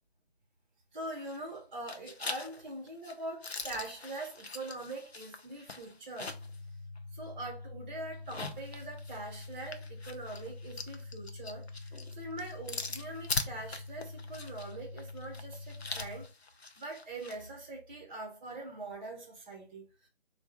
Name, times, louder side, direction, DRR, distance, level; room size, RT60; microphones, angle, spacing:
voice 1, 0.9-6.3 7.1-11.7 12.1-16.3 16.8-19.8, right 2 dB, 10° right, 0.6 m, -43 dB
sound 1, 1.2-1.6 1.9-6.6 7.0-7.1 8.1-17.4, left 3 dB, 75° left, 0.7 m, -42 dB
sound 2, 6.3-16.3, left 3 dB, 35° left, 0.4 m, -46 dB
3.4 x 2.5 x 4.5 m
figure-of-eight pair, 145°, 32 cm